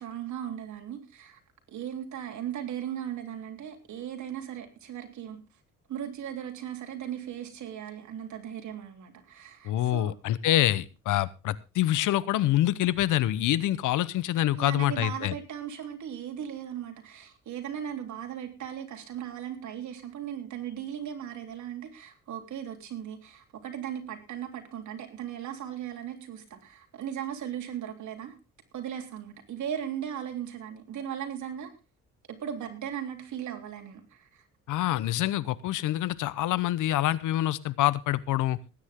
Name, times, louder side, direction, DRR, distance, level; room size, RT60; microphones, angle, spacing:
voice 1, 0.0-1.4 1.7-5.4 5.9-10.1 14.5-28.4 28.7-31.7 32.3-34.4 35.0-35.1, right 9 dB, 70° right, 3.5 m, -37 dB
voice 2, 9.6-15.3 34.7-38.6, left 14 dB, 85° left, 0.9 m, -26 dB
19.5 x 9.7 x 3.7 m
cardioid pair, 90°, 30 cm